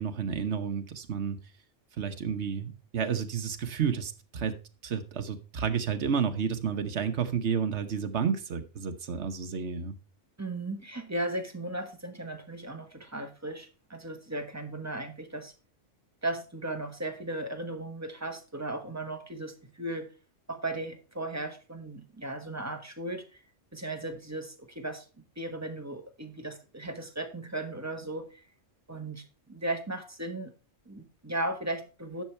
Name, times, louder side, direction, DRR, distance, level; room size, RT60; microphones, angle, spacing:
voice 1, 0.0-1.4 2.0-4.5 4.8-9.9, right 7 dB, 65° right, 8 dB, 1.3 m, -31 dB
voice 2, 10.4-15.5 16.2-20.1 20.5-23.4 23.7-25.0 25.4-28.4 28.9-30.5 30.9-32.2, right 2 dB, 15° right, 5 dB, 1.2 m, -36 dB
11.0 x 6.6 x 4.4 m, 0.33 s
omnidirectional pair, 1.3 m